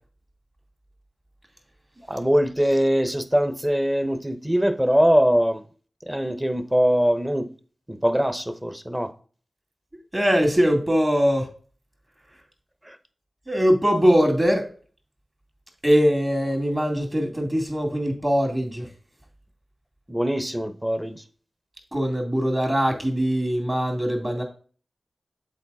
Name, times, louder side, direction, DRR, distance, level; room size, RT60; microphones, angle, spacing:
voice 1, 2.1-5.6 6.1-7.5 7.9-9.1 12.8-13.0 20.1-21.2, equal, 10° right, 0.8 m, -22 dB
voice 2, 10.1-11.5 13.5-14.6 15.8-18.9 21.9-24.4, equal, 30° right, 2.3 m, -21 dB
7.1 x 4.1 x 4.0 m
cardioid pair, 50°, 0 cm